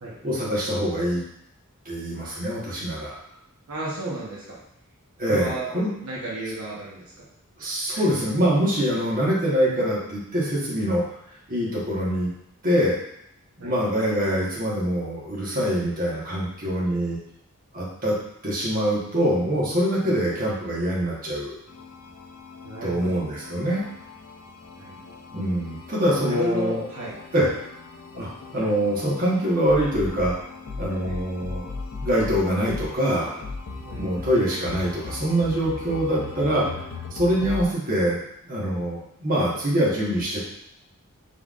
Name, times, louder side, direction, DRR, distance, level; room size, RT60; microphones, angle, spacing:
voice 1, 0.2-1.2 1.8-3.2 5.2-5.9 7.6-11.0 11.5-12.3 12.6-13.0 13.6-17.2 17.7-18.2 18.4-21.6 22.8-23.8 25.3-26.8 27.3-27.5 28.1-30.3 30.8-31.7 32.0-33.4 33.9-36.7 37.1-38.2 38.4-40.4, equal, 40° right, -6 dB, 1.3 m, -24 dB
voice 2, 3.7-4.6 5.3-5.7 6.0-7.2 7.9-8.0 13.6-13.7 20.0-20.1 22.6-23.2 24.8-25.2 26.2-27.1 31.0-31.2 33.8-34.0, right 2 dB, 70° right, -6 dB, 0.9 m, -33 dB
sound 1, 21.7-37.7, left 3 dB, 75° left, 0.5 m, -38 dB
5.5 x 3.4 x 2.5 m, 0.76 s
head